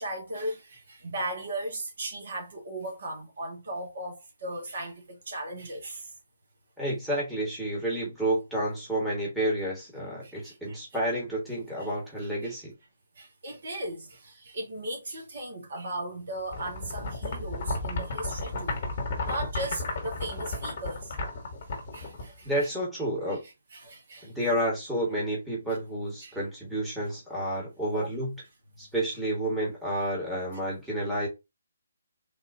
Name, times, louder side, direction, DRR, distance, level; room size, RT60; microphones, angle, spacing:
voice 1, 0.0-6.1 10.2-10.8 11.8-11.9 12.4-12.5 13.2-18.8 19.2-21.1 21.9-22.7 23.3-23.4 23.7-24.3 26.2-26.4 27.9-28.1, right 1 dB, 50° right, 1.4 m, -37 dB
voice 2, 6.8-12.7 22.4-23.4 24.2-28.3 28.8-31.3, right 1 dB, ahead, 1.4 m, -30 dB
sound 1, 16.5-22.6, left 2 dB, 40° left, 1.4 m, -33 dB
3.8 x 2.7 x 2.6 m
figure-of-eight pair, 140°, 0 cm